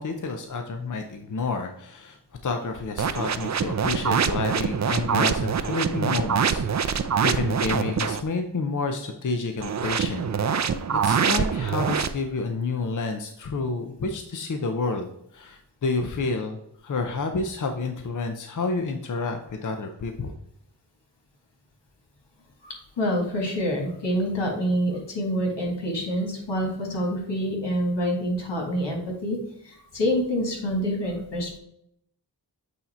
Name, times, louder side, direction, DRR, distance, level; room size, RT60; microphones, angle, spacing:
voice 1, 0.0-10.7 11.0-20.3, left 3 dB, 45° left, 5 dB, 0.7 m, -30 dB
sound 1, 3.0-8.2 9.6-12.1, right 7 dB, 40° right, 0.5 m, -24 dB
voice 2, 22.6-31.6, equal, 80° left, -1 dB, 2.0 m, -27 dB
8.3 x 2.8 x 4.3 m, 0.74 s
cardioid pair, 50°, 42 cm